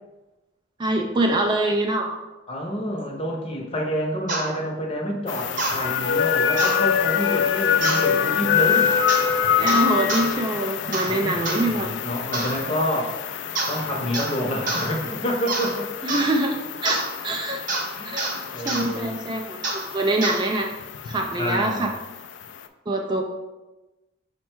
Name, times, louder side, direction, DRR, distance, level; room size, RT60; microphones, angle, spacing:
voice 1, 0.8-2.2 9.6-11.9 16.0-17.6 18.0-18.3 18.6-20.7 21.0-21.9 22.9-23.2, right 2 dB, 25° right, 2 dB, 0.3 m, -24 dB
voice 2, 2.5-8.9 11.0-13.2 13.7-15.9 17.5-17.6 18.0-19.2 21.3-21.9, equal, 30° left, 0 dB, 0.8 m, -28 dB
sound 1, 4.3-4.5 5.6-5.8 6.6-6.8 7.8-8.1 9.1-9.3 9.7-10.3 10.9-11.1 11.5-11.6 12.3-12.6 13.6-13.8 14.1-14.4 14.7-14.9 15.5-15.7 16.1-16.3 16.9-17.1 17.7-17.9 18.2-18.4 18.7-18.9 19.6-19.8 20.2-20.4, right 2 dB, 45° right, 0.8 m, -27 dB
sound 2, 5.3-22.7, left 8 dB, 70° left, 0.3 m, -26 dB
5.4 x 2.2 x 4.4 m, 1.1 s
head